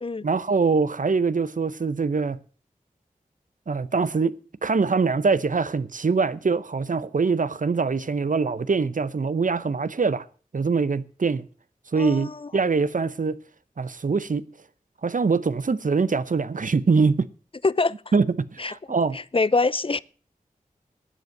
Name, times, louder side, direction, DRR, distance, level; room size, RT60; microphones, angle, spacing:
voice 1, 0.2-2.4 3.7-10.2 10.5-11.4 11.9-13.4 13.8-14.4 15.0-17.3 18.1-19.2, right 4 dB, 60° right, 0.7 m, -23 dB
voice 2, 12.0-12.5 17.6-17.9 18.6-18.7 19.1-20.0, left 3 dB, 35° left, 0.5 m, -24 dB
12.5 x 8.2 x 7.7 m
cardioid pair, 40°, 15 cm